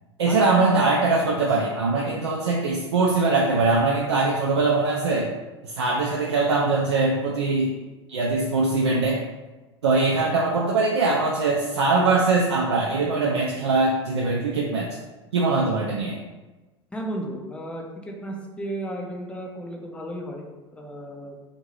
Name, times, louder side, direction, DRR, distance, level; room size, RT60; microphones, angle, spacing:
voice 1, 0.2-5.3 5.6-7.7 8.1-9.2 9.8-15.0 15.3-16.2, right 3 dB, 70° right, -3 dB, 0.4 m, -22 dB
voice 2, 16.9-20.5 20.7-21.3, right 1 dB, 10° left, 1 dB, 0.4 m, -34 dB
2.7 x 2.5 x 3.0 m, 1.1 s
figure-of-eight pair, 80°, 14 cm